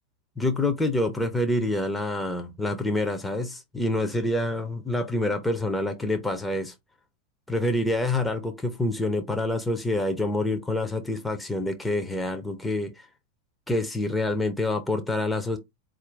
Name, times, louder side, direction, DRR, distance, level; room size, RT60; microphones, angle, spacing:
voice 1, 0.4-6.7 7.5-13.1 13.7-15.6, left 1 dB, 5° left, 0.5 m, -27 dB
4.3 x 2.4 x 3.3 m
figure-of-eight pair, 90°, 0 cm